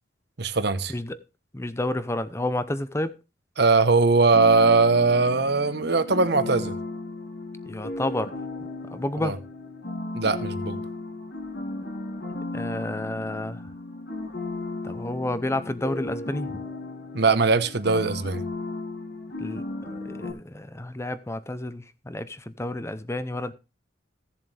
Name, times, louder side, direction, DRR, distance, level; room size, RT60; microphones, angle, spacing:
voice 1, 0.4-0.9 3.6-6.7 9.2-9.3 10.1-10.8 17.1-18.4, right 3 dB, 60° right, 1.1 m, -20 dB
voice 2, 0.9-1.2 1.5-3.2 7.7-8.3 8.9-9.4 12.5-13.6 14.8-16.6 19.4-23.5, left 1 dB, 15° left, 0.7 m, -30 dB
sound 1, 4.3-20.3, left 2 dB, 60° left, 2.6 m, -35 dB
16.5 x 7.3 x 3.4 m
head